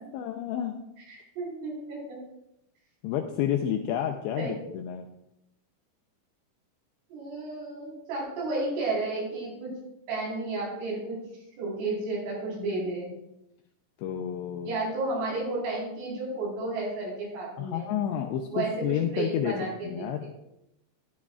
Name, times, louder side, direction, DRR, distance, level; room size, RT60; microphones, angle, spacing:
voice 1, 0.1-0.7 3.0-5.1 14.0-14.8 17.6-19.5 19.8-20.3, left 10 dB, 85° left, 4 dB, 2.5 m, -30 dB
voice 2, 1.1-2.2 3.3-3.4 4.4-4.5 7.1-9.7 10.1-11.2 11.6-13.2 14.6-17.9 18.5-20.0, right 2 dB, 85° right, -4 dB, 6.8 m, -32 dB
12.5 x 12.5 x 2.4 m, 0.84 s
omnidirectional pair, 5.7 m